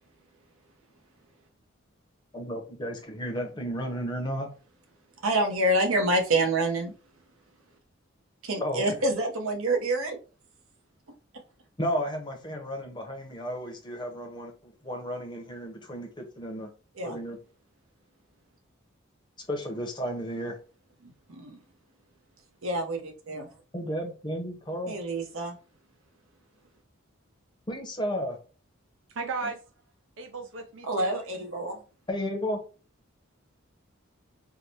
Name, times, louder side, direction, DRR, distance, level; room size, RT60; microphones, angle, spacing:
voice 1, 2.3-4.5 8.6-9.0 11.8-16.7 17.0-17.4 19.5-20.6 23.7-25.0 27.7-28.4 32.1-32.6, equal, 20° left, 0.7 m, -33 dB
voice 2, 5.2-6.9 8.4-10.2 17.0-17.2 21.0-21.6 22.6-23.5 24.9-25.5 30.9-31.8, right 1 dB, 80° right, 0.9 m, -27 dB
voice 3, 29.1-29.6 30.2-31.2, right 4 dB, 60° right, 0.4 m, -35 dB
4.7 x 2.2 x 2.8 m
head